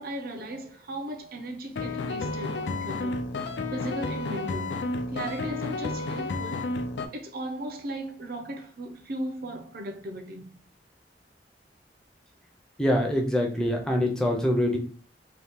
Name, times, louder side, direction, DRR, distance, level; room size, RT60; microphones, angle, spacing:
voice 1, 0.0-3.2 3.7-4.8 5.1-6.7 7.1-10.5, right 1 dB, 55° right, 0.6 m, -36 dB
sound 1, 1.8-7.1, left 3 dB, 80° left, 0.4 m, -31 dB
voice 2, 12.8-14.8, equal, 5° left, 0.6 m, -24 dB
2.9 x 2.3 x 3.4 m
head